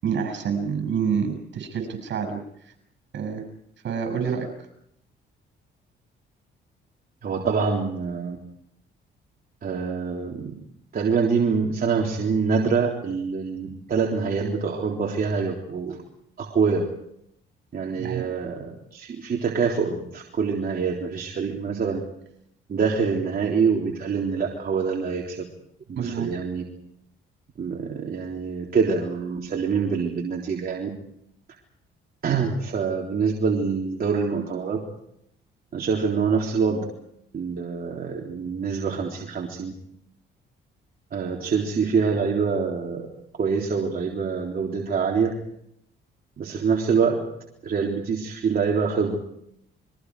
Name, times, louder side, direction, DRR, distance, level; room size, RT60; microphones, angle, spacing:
voice 1, 0.0-2.4 3.1-3.4 3.8-4.5 18.0-18.2 26.0-26.3, right 6 dB, 65° right, 7 dB, 7.1 m, -27 dB
voice 2, 7.2-8.4 9.6-10.6 10.9-16.0 16.4-16.9 17.7-22.0 22.7-25.4 25.9-26.6 27.6-30.9 32.2-34.8 35.7-36.9 37.3-39.7 41.1-43.1 43.4-45.3 46.4-47.3 47.6-49.2, right 5 dB, 50° right, -1 dB, 3.7 m, -25 dB
30.0 x 23.0 x 4.9 m, 0.73 s
cardioid pair, 90°, 20 cm